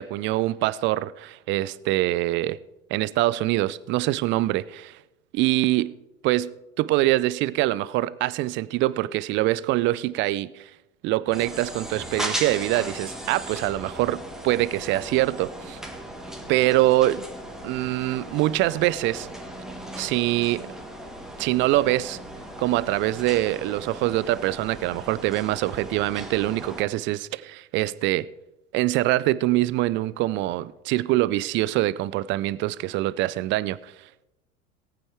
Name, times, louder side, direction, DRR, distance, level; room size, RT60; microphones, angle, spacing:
voice 1, 0.0-2.6 2.9-5.0 5.3-5.9 6.2-6.5 6.8-10.7 11.0-15.8 16.5-17.3 17.6-19.3 20.0-20.7 21.4-22.2 22.6-28.3 28.7-33.9, right 16 dB, 30° right, 0.4 m, -24 dB
sound 1, 11.3-26.8, right 1 dB, ahead, 1.6 m, -37 dB
19.0 x 9.0 x 3.4 m
hypercardioid pair, 90°, 43 cm